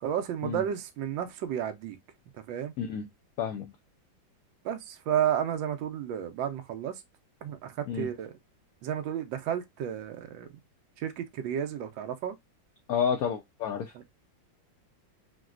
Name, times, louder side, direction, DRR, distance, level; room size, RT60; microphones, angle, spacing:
voice 1, 0.0-2.0 2.5-2.7 4.6-6.9 7.4-8.3 8.8-10.5 11.0-12.4, right 9 dB, 80° right, 1.3 m, -32 dB
voice 2, 2.8-3.1 3.4-3.7 7.9-8.1 12.9-13.9, left 7 dB, 80° left, 0.8 m, -30 dB
4.0 x 2.2 x 2.3 m
omnidirectional pair, 2.1 m